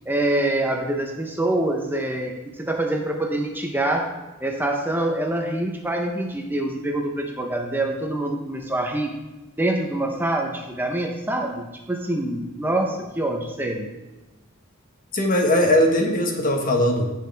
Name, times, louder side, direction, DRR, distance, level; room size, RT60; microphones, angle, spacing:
voice 1, 0.1-4.1 4.4-9.1 9.6-13.9, right 1 dB, 10° right, 2 dB, 0.9 m, -25 dB
voice 2, 15.1-17.1, left 1 dB, 40° left, 3 dB, 1.5 m, -20 dB
16.0 x 6.5 x 3.5 m, 1.1 s
head